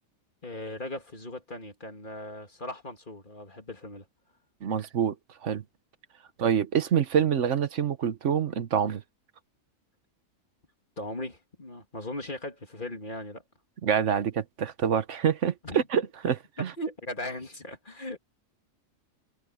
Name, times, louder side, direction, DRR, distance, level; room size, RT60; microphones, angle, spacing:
voice 1, 0.4-4.1 11.0-13.4 15.6-15.8 16.6-18.2, left 1 dB, 35° left, 2.7 m, -38 dB
voice 2, 4.6-5.2 5.4-5.6 6.4-9.0 13.8-16.7, right 8 dB, 60° right, 1.3 m, -26 dB
omnidirectional pair, 1.4 m